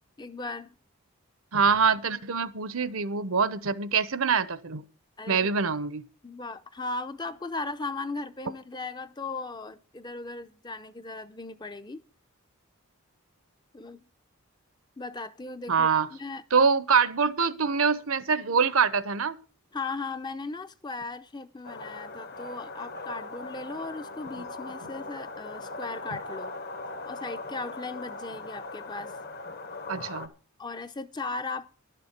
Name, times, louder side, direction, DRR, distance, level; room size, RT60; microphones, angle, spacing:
voice 1, 0.2-0.7 5.2-5.5 6.2-12.0 13.7-14.0 15.0-16.7 19.7-26.5 27.1-29.1 30.6-31.7, left 3 dB, 20° left, 0.6 m, -37 dB
voice 2, 1.5-4.8 5.3-6.0 15.7-16.1 16.5-19.4 29.9-30.3, right 5 dB, 70° right, 0.9 m, -24 dB
sound 1, 21.6-30.3, left 3 dB, 45° left, 1.0 m, -39 dB
11.5 x 6.9 x 8.0 m
head